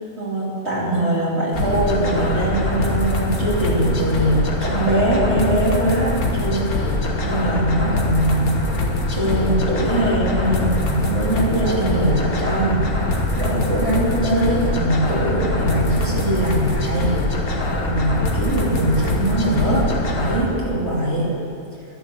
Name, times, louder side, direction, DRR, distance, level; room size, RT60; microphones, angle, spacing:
voice 1, 0.2-8.6 9.1-17.1 17.8-21.3, right 1 dB, 45° right, -6 dB, 3.3 m, -22 dB
sound 1, 1.5-20.4, left 2 dB, 75° left, 1.9 m, -23 dB
12.5 x 11.0 x 7.4 m, 2.5 s
omnidirectional pair, 1.6 m